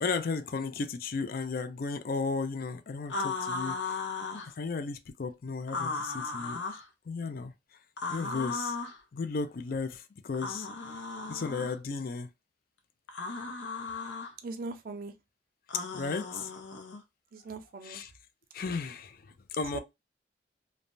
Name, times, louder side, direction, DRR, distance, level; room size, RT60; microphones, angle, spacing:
voice 1, 0.0-4.0 4.5-6.8 7.1-7.5 8.1-8.8 9.1-10.7 11.3-12.3 15.9-16.5 17.8-18.1 18.5-19.8, left 4 dB, 50° left, 0.4 m, -34 dB
sound 1, 3.1-4.5 5.7-6.8 8.0-9.0 10.3-11.8 13.1-14.3 15.7-17.0, left 4 dB, 85° left, 0.7 m, -36 dB
voice 2, 14.4-15.1 17.3-18.0 19.7-19.8, right 3 dB, 50° right, 0.4 m, -40 dB
3.2 x 2.1 x 2.5 m
head